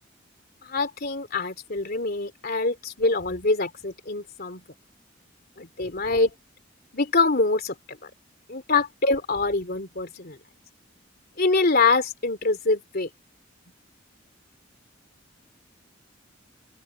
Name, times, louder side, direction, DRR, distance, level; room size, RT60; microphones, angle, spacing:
voice 1, 0.6-4.6 5.6-6.3 6.9-8.1 8.5-10.4 11.4-13.1, left 3 dB, 50° left, 3.0 m, -25 dB
open air
head